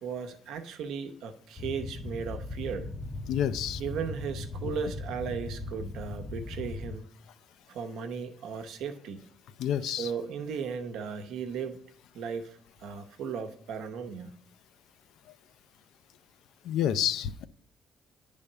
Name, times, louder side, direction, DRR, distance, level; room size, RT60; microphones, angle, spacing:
voice 1, 0.0-2.9 3.8-7.1 7.7-9.2 9.8-11.8 12.1-14.3, right 6 dB, 85° right, 6 dB, 0.8 m, -36 dB
sound 1, 1.6-7.0, left 2 dB, 20° left, 0.5 m, -38 dB
voice 2, 3.3-3.8 4.6-4.7 9.6-10.1 15.3-15.4 16.6-17.5, left 10 dB, 85° left, 14 dB, 0.4 m, -29 dB
9.7 x 3.5 x 6.5 m, 0.66 s
cardioid pair, 90°, 0 cm